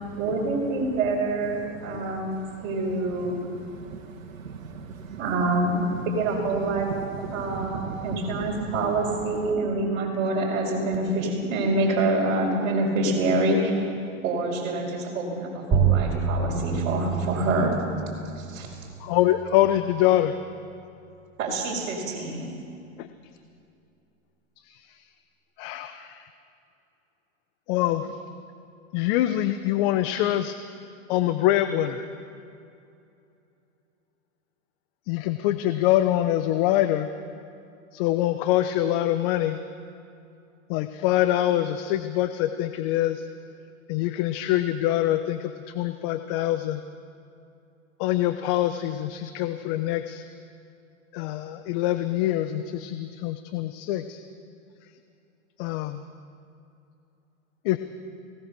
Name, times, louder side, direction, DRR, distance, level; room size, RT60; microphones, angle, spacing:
voice 1, 0.2-2.4 2.6-3.4 5.2-6.9 7.2-13.8 14.2-17.8 18.1-18.7 21.4-22.5, right 2 dB, 55° right, -3 dB, 5.4 m, -26 dB
voice 2, 3.8-5.2 7.2-8.5, right 6 dB, 85° right, -1 dB, 2.1 m, -37 dB
sound 1, 15.7-20.8, right 7 dB, 25° right, 3.8 m, -28 dB
voice 3, 19.0-20.4 23.0-23.1 25.6-26.2 27.7-28.1 28.9-30.6 31.1-32.0 35.1-37.1 37.9-39.6 40.7-43.3 43.9-46.8 48.0-50.2 51.1-54.2 55.6-56.0 57.6-57.8, left 13 dB, 40° left, 9 dB, 1.0 m, -24 dB
23.5 x 18.5 x 6.9 m, 2.6 s
hypercardioid pair, 125°, 41 cm